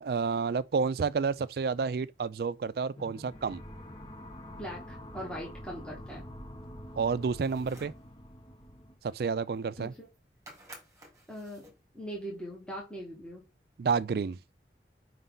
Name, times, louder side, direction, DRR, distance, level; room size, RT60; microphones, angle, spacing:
voice 1, 0.0-3.6 7.0-7.9 9.0-9.9 13.8-14.4, right 5 dB, 60° right, 0.3 m, -30 dB
sound 1, 3.0-9.0, equal, 25° left, 0.8 m, -46 dB
voice 2, 4.5-6.2 9.8-10.1 11.3-11.6 11.9-13.4, equal, 5° left, 1.7 m, -41 dB
sound 2, 7.2-8.1 9.6-9.7 9.8-10.2 10.5-11.8, right 1 dB, 20° right, 2.0 m, -53 dB
5.4 x 5.2 x 3.8 m
head